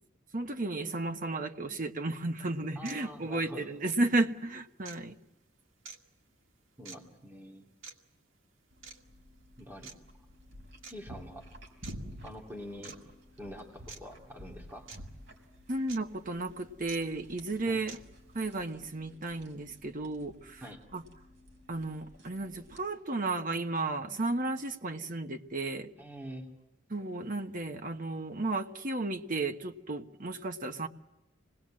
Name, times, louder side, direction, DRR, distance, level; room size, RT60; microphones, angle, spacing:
voice 1, 0.3-5.1 15.7-18.0 18.3-20.6 20.9-21.0 21.7-25.9 26.9-30.9, right 2 dB, 45° right, 6 dB, 1.2 m, -33 dB
sound 1, 2.1-2.2 2.8-3.0 3.8-4.0 4.8-5.0 5.8-6.0 6.8-7.0 7.8-7.9 8.8-9.0 9.8-9.9 10.8-10.9 11.8-12.0 12.8-13.0 13.9-14.0 14.9-15.0 15.9-16.0 16.9-17.0 17.9-18.0, right 5 dB, 85° right, 2.0 m, -46 dB
voice 2, 2.7-3.7 6.8-7.7 9.6-9.9 10.9-11.5 12.2-13.1 13.4-14.9 17.7-17.8 20.6-20.8 26.0-26.5, equal, 10° right, 0 dB, 2.8 m, -45 dB
sound 2, 8.7-22.8, equal, 60° right, 4.3 m, -51 dB
26.5 x 20.0 x 7.6 m, 0.94 s
head